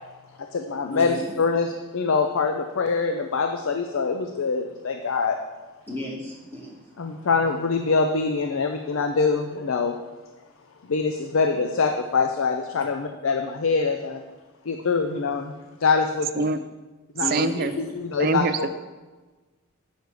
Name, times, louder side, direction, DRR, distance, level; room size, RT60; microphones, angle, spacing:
voice 1, 0.4-5.4 7.0-10.0 10.9-14.2 14.6-15.5 15.8-16.4 17.2-18.7, left 4 dB, 70° left, 6 dB, 0.5 m, -24 dB
voice 2, 0.9-1.3 5.9-7.2 17.2-17.9, left 1 dB, 10° left, -4 dB, 1.9 m, -34 dB
voice 3, 17.3-17.7 18.2-18.6, right 3 dB, 45° right, 10 dB, 0.4 m, -24 dB
8.1 x 6.4 x 4.8 m, 1.3 s
head